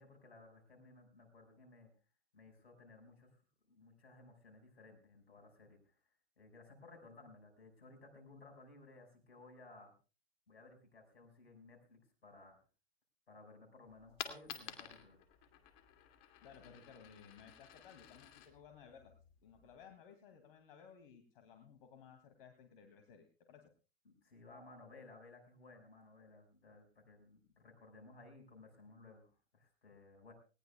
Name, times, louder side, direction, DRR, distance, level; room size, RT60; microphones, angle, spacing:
voice 1, 0.0-1.9 2.3-3.3 3.7-5.8 6.4-9.9 10.5-12.6 13.3-15.2 24.1-30.3, left 3 dB, 85° left, 4 dB, 5.6 m, -59 dB
Coin (dropping), 13.9-19.9, left 10 dB, 45° left, 2.5 m, -52 dB
voice 2, 16.4-19.1 19.4-23.7, left 7 dB, 60° left, 6 dB, 2.6 m, -59 dB
19.5 x 18.5 x 2.3 m, 0.34 s
hypercardioid pair, 110°, 31 cm